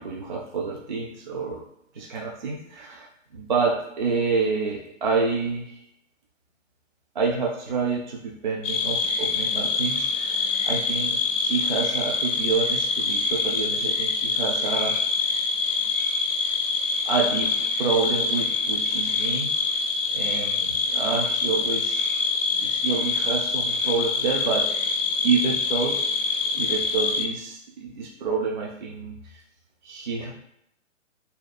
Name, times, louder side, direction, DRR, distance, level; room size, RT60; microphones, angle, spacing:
voice 1, 0.0-1.6 1.9-5.8 7.1-14.9 17.1-19.8 20.1-22.3 22.6-24.7 25.2-26.0 26.5-29.4 29.8-30.3, right 4 dB, 40° right, -1 dB, 0.4 m, -28 dB
sound 1, 8.6-27.3, left 4 dB, 75° left, 0.6 m, -25 dB
2.7 x 2.2 x 4.0 m, 0.76 s
figure-of-eight pair, 125°, 38 cm